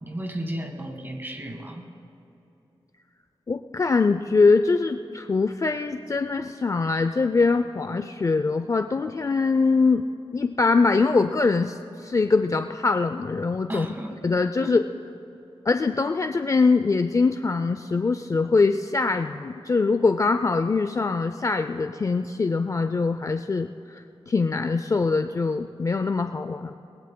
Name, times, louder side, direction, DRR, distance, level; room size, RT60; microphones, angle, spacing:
voice 1, 0.0-1.9 13.7-14.2 14.6-14.8, right 1 dB, 20° right, 4 dB, 1.6 m, -34 dB
voice 2, 3.5-10.0 10.3-13.9 14.2-14.8 15.7-26.7, left 4 dB, 35° left, 8 dB, 0.4 m, -23 dB
23.0 x 20.0 x 2.2 m, 2.9 s
wide cardioid pair, 125°, 10 cm